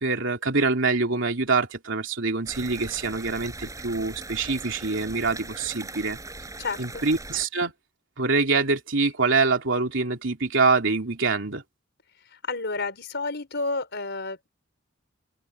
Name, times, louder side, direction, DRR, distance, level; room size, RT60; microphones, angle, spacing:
voice 1, 0.0-6.2 6.8-7.7 8.2-11.6, right 4 dB, 70° right, 3.3 m, -25 dB
sound 1, 2.4-7.4, right 2 dB, 15° right, 5.9 m, -40 dB
voice 2, 6.6-7.1 12.3-14.5, left 3 dB, 60° left, 5.1 m, -31 dB
open air
head